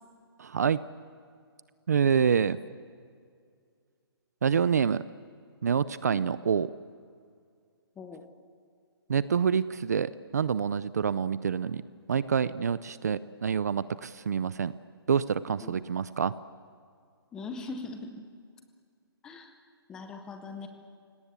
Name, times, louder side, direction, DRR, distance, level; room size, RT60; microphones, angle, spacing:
voice 1, 0.4-0.8 1.9-2.6 4.4-5.0 5.6-6.7 9.1-11.8 12.1-14.7 15.1-16.3, right 7 dB, 40° right, 17 dB, 0.5 m, -27 dB
voice 2, 17.3-18.1 19.2-19.5 19.9-20.7, left 4 dB, 5° left, 7 dB, 0.8 m, -40 dB
29.0 x 18.0 x 8.3 m, 2.2 s
hypercardioid pair, 180°, 13 cm